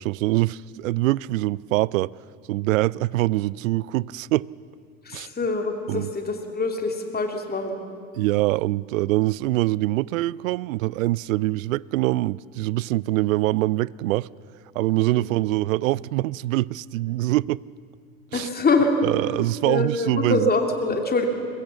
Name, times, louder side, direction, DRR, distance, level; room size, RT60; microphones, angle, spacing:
voice 1, 0.0-2.1 2.5-4.5 5.1-5.3 5.9-6.1 8.2-14.3 14.8-17.6 18.3-18.5 19.0-20.4, right 18 dB, 70° right, 0.5 m, -24 dB
voice 2, 5.0-7.8 15.2-15.3 18.3-19.0 19.6-21.3, left 3 dB, 20° left, 2.7 m, -24 dB
23.5 x 21.0 x 7.3 m
figure-of-eight pair, 75°, 42 cm